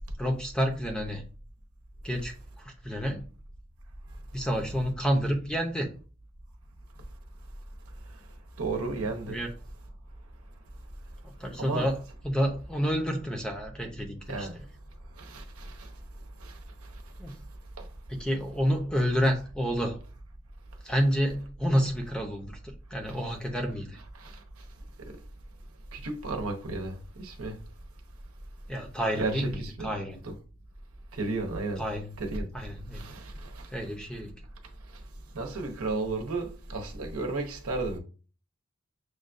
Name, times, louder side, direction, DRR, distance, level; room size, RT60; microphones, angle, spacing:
voice 1, 0.2-1.2 2.0-3.2 4.3-5.9 9.3-9.5 11.4-12.0 12.2-14.6 17.2-17.4 18.1-20.0 20.8-22.6 22.9-24.0 28.7-30.2 31.8-32.1 32.5-33.1 33.7-34.3, equal, 5° left, 0.5 m, -29 dB
voice 2, 8.6-9.4 11.6-11.9 14.3-14.5 15.2-15.7 16.4-16.5 17.8-17.9 24.2-24.3 25.9-27.6 29.2-29.9 30.2-30.3 31.2-31.8 32.2-32.5 32.9-33.6 35.3-38.0, right 3 dB, 90° right, 0.8 m, -33 dB
6.3 x 2.3 x 2.5 m
head